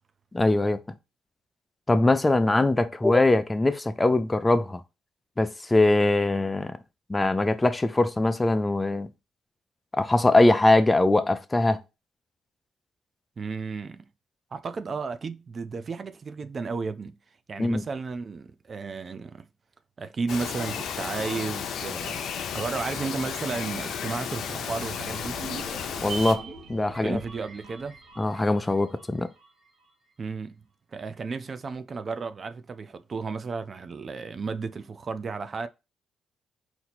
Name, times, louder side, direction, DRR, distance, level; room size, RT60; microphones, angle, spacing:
voice 1, 0.3-0.8 1.9-4.8 5.4-6.8 7.1-9.1 10.0-11.8 17.6-17.8 26.0-26.4 26.7-27.2 28.2-29.3, left 2 dB, 15° left, 0.5 m, -22 dB
voice 2, 13.4-14.1 14.5-17.2 17.5-19.4 20.0-25.4 27.0-27.9 30.2-30.6 30.9-35.7, right 4 dB, 40° right, 0.5 m, -33 dB
Bird vocalization bird call bird song, 20.3-26.3, left 7 dB, 70° left, 0.6 m, -33 dB
sound 1, 24.8-28.9, equal, 80° right, 1.3 m, -48 dB
sound 2, 25.3-29.8 30.1-30.2, right 5 dB, 55° right, 1.4 m, -42 dB
4.4 x 2.7 x 4.1 m
cardioid pair, 90°, 0 cm